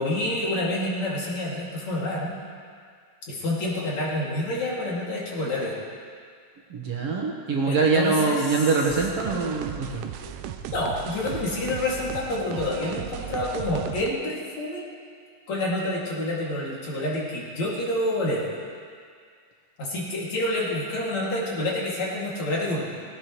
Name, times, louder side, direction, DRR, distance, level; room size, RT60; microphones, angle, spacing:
voice 1, 0.0-2.3 3.3-5.8 7.7-8.7 10.2-10.3 10.7-14.8 15.5-18.4 19.8-22.9, left 1 dB, 60° left, -5 dB, 3.8 m, -28 dB
voice 2, 6.7-10.0, right 4 dB, 60° right, -2 dB, 2.0 m, -24 dB
sound 1, 8.9-14.1, right 10 dB, 90° right, 2.2 m, -36 dB
18.5 x 17.0 x 3.2 m, 2.1 s
omnidirectional pair, 3.6 m